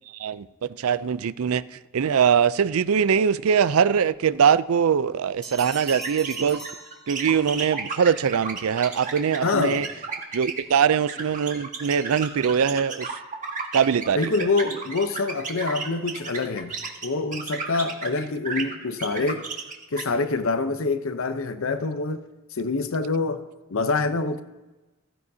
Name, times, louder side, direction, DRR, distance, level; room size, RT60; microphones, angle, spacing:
voice 1, 0.1-6.6 7.1-9.9 10.3-13.2 13.7-14.3, right 7 dB, 75° right, 0.4 m, -22 dB
sound 1, 5.4-7.7, right 1 dB, 5° left, 2.3 m, -41 dB
sound 2, 5.8-18.2 18.4-20.0, right 4 dB, 40° right, 1.4 m, -33 dB
voice 2, 9.4-9.9 14.1-16.7 17.0-19.5 19.9-22.2 22.5-23.4 23.7-24.4, left 3 dB, 65° left, 0.8 m, -26 dB
15.5 x 15.5 x 2.8 m
head